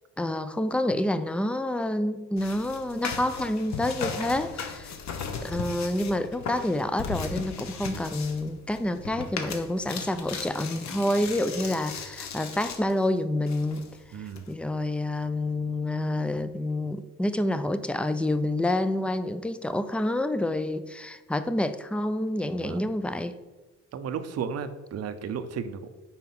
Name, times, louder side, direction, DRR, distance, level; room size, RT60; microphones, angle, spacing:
voice 1, 0.2-4.9 5.4-13.9 14.2-23.3, left 1 dB, 5° left, 11 dB, 0.4 m, -28 dB
sound 1, 2.4-13.0 13.5-14.5, left 5 dB, 65° left, 0.9 m, -37 dB
voice 2, 14.1-14.5 22.6-22.9 23.9-25.9, right 6 dB, 55° right, 10 dB, 0.7 m, -34 dB
5.7 x 4.4 x 5.8 m, 1.2 s
cardioid pair, 90°, 30 cm